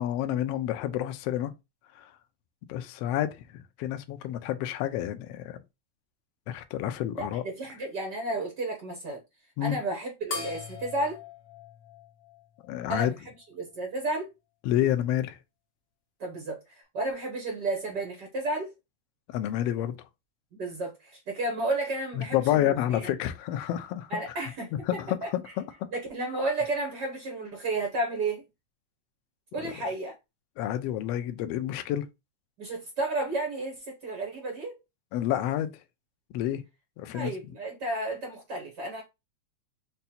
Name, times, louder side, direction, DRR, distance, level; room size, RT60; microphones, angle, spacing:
voice 1, 0.0-1.5 2.0-2.1 2.7-5.6 6.5-7.4 9.6-9.8 12.7-13.1 14.6-15.4 19.3-20.0 22.2-24.1 24.9-25.9 29.6-29.7 30.6-32.0 35.1-35.7 36.3-36.6 37.0-37.3, left 12 dB, 85° left, 1.4 m, -29 dB
voice 2, 7.2-9.2 9.6-11.2 12.9-13.2 13.6-14.3 16.2-18.7 20.5-23.1 24.1-24.7 25.2-25.3 25.9-28.4 29.5-30.1 32.6-34.8 37.1-39.0, right 2 dB, 85° right, 0.9 m, -32 dB
sound 1, 10.3-13.1, left 6 dB, 55° left, 1.9 m, -40 dB
5.4 x 2.3 x 4.2 m
omnidirectional pair, 3.5 m